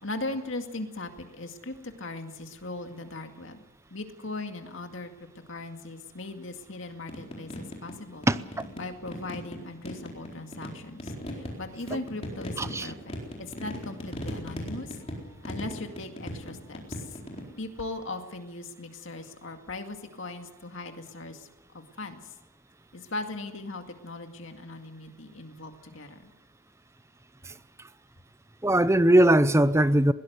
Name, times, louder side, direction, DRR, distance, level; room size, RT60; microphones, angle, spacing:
voice 1, 0.0-3.6 3.9-5.1 5.5-8.3 8.7-15.0 15.4-17.2 17.6-21.5 21.7-22.3 22.9-26.3, left 2 dB, 65° left, 5 dB, 2.2 m, -39 dB
sound 1, 7.1-7.9 8.2-9.6 9.9-17.5, equal, 30° left, 4.2 m, -38 dB
voice 2, 12.6-12.9 27.5-27.6 28.6-30.1, right 1 dB, 15° right, 14 dB, 0.6 m, -20 dB
21.5 x 17.5 x 8.1 m, 1.1 s
head